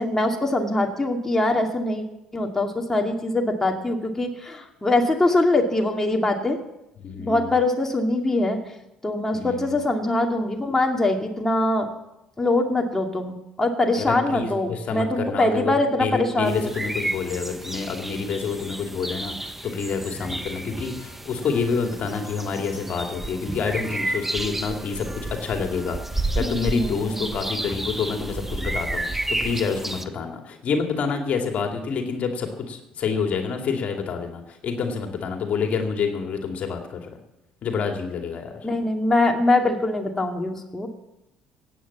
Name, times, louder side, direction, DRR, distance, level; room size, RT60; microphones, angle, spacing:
voice 1, 0.0-2.0 2.3-6.6 7.2-8.6 9.0-11.9 12.4-16.7 26.4-27.3 38.6-40.9, left 2 dB, 15° left, 2 dB, 2.3 m, -23 dB
voice 2, 7.0-7.6 9.3-9.8 14.0-15.7 16.0-37.2 37.6-38.6, left 5 dB, 50° left, 3 dB, 2.5 m, -28 dB
sound 1, 16.5-30.0, right 2 dB, 10° right, 1.2 m, -31 dB
16.5 x 9.3 x 7.2 m, 0.89 s
hypercardioid pair, 60°, 3 cm